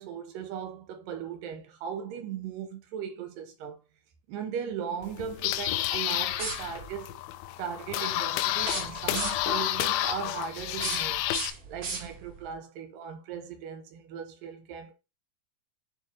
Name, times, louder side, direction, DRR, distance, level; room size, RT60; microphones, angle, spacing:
voice 1, 0.0-3.8 4.3-7.2 7.6-11.2 11.7-14.9, right 7 dB, 80° right, 2.5 m, -38 dB
sound 1, 5.0-11.5, left 14 dB, 90° left, 2.3 m, -30 dB
sound 2, 6.3-7.0 8.6-9.6 10.6-12.4, right 4 dB, 55° right, 3.8 m, -37 dB
8.9 x 3.7 x 2.8 m
omnidirectional pair, 4.0 m